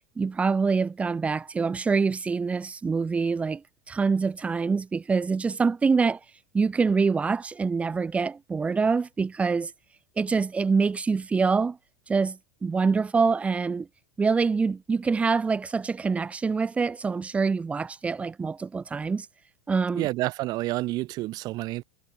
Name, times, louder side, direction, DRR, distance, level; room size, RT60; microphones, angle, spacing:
voice 1, 0.2-6.2 6.5-9.7 10.2-11.8 12.1-13.9 14.2-19.3 19.7-20.1, right 4 dB, 10° right, 7.8 m, -25 dB
voice 2, 20.0-21.8, right 18 dB, 35° right, 5.6 m, -29 dB
supercardioid pair, 170°, 12 cm